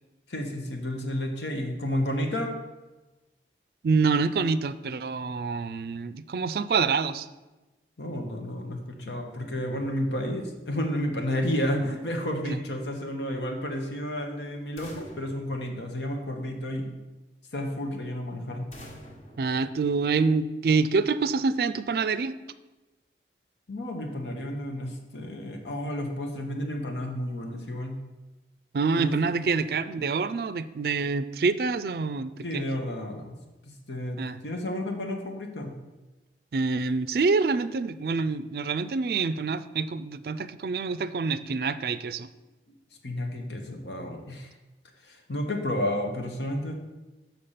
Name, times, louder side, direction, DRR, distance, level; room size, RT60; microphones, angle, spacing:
voice 1, 0.3-2.5 8.0-16.9 17.5-18.7 23.7-28.0 29.0-29.1 32.4-33.3 33.6-34.2 34.4-35.7 43.0-44.5 45.0-46.7, left 1 dB, 85° left, 3 dB, 1.3 m, -31 dB
voice 2, 3.8-7.3 12.5-12.6 19.4-22.4 28.7-32.7 34.2-34.4 36.5-42.3, right 4 dB, 60° right, 13 dB, 0.4 m, -26 dB
sound 1, 14.8-16.6 18.7-20.5, equal, 40° left, 1.3 m, -48 dB
6.8 x 5.8 x 5.6 m, 1.1 s
head